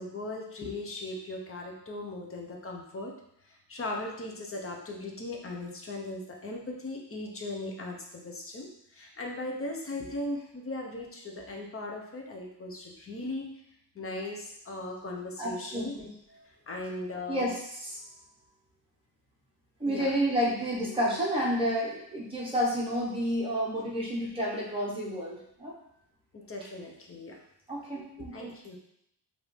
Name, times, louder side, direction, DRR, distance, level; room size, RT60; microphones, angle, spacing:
voice 1, 0.0-3.1 3.7-13.5 13.9-15.9 16.7-17.5 19.9-20.1 26.3-27.4 28.3-28.8, left 2 dB, 35° left, 0 dB, 0.7 m, -38 dB
voice 2, 15.4-16.1 17.3-18.0 19.8-25.7 27.7-28.5, equal, 15° right, -5 dB, 1.2 m, -30 dB
4.9 x 2.7 x 3.2 m, 0.74 s
wide cardioid pair, 150°, 41 cm